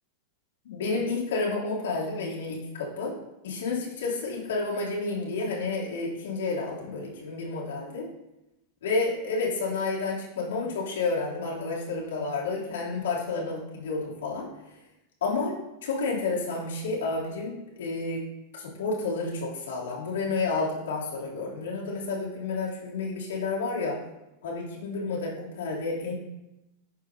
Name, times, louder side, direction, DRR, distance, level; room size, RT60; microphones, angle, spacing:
voice 1, 0.6-3.1 3.4-8.0 8.8-14.5 15.2-15.6 15.8-18.2 18.5-24.0 24.4-26.1, left 3 dB, 60° left, -4 dB, 2.8 m, -30 dB
12.0 x 6.3 x 2.7 m, 0.95 s
figure-of-eight pair, 90°, 0 cm